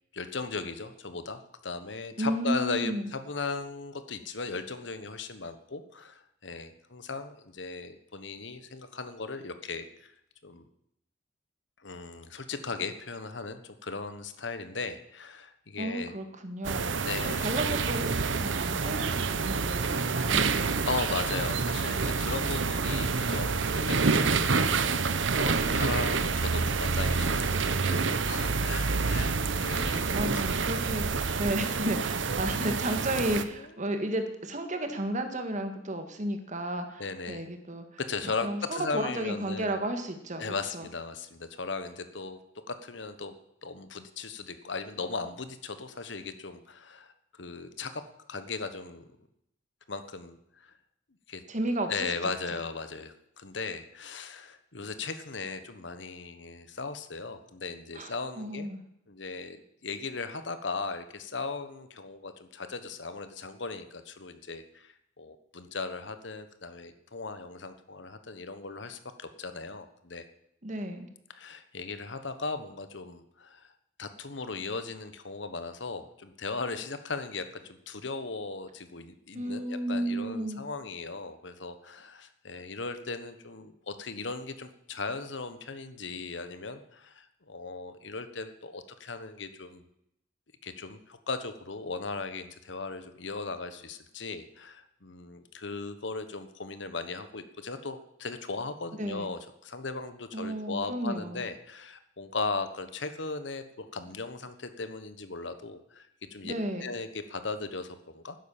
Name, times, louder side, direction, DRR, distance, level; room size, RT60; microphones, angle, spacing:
voice 1, 0.1-10.1 10.4-10.6 11.8-16.1 17.1-17.5 20.9-24.5 24.8-30.0 33.5-33.6 37.0-37.4 38.0-39.8 40.4-42.4 42.7-43.3 43.6-48.0 48.3-49.1 49.9-50.7 51.3-51.4 51.9-58.7 59.1-70.2 71.4-73.7 74.0-89.8 90.6-106.1 106.3-106.5 106.8-108.5, left 4 dB, 70° left, 10 dB, 1.3 m, -37 dB
voice 2, 2.2-3.1 15.8-17.0 17.3-20.8 30.1-40.5 40.7-40.9 51.5-52.3 57.9-58.8 70.6-71.1 79.3-80.6 99.0-99.3 100.3-101.4 106.4-106.9, right 1 dB, 40° right, 7 dB, 1.8 m, -33 dB
sound 1, 16.6-33.4, right 4 dB, 80° right, 0.9 m, -28 dB
12.0 x 10.0 x 7.2 m, 0.77 s
head